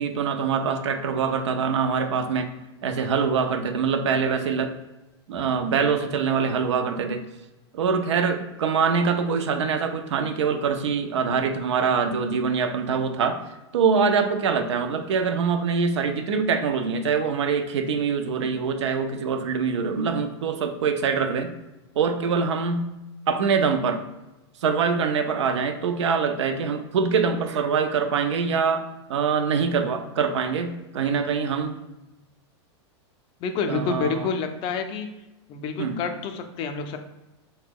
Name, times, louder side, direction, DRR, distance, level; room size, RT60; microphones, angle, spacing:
voice 1, 0.0-2.5 2.8-4.7 5.3-7.2 7.7-21.5 22.0-22.9 23.3-24.0 24.6-31.7 33.7-34.3 35.8-36.0, right 5 dB, 85° right, 7 dB, 0.4 m, -24 dB
voice 2, 33.4-35.1 35.5-37.0, left 5 dB, 40° left, 7 dB, 0.3 m, -28 dB
2.9 x 2.1 x 3.4 m, 1.0 s
hypercardioid pair, 115°, 14 cm